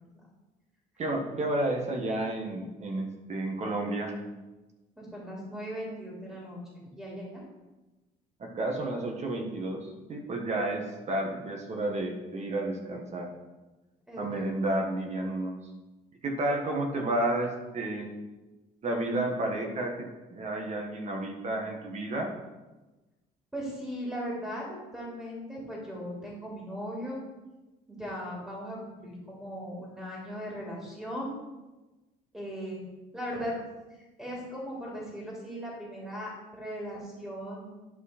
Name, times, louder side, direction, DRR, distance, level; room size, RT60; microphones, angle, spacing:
voice 1, 1.0-4.2 8.4-13.3 14.2-15.5 16.2-18.1 18.8-22.3, right 1 dB, 40° right, 2 dB, 1.5 m, -31 dB
voice 2, 5.0-7.4 14.1-14.5 23.5-27.2 27.9-31.3 32.3-32.8 33.1-33.6 33.9-37.7, equal, 5° right, -4 dB, 2.9 m, -38 dB
11.0 x 5.1 x 4.3 m, 1.1 s
cardioid pair, 110°, 17 cm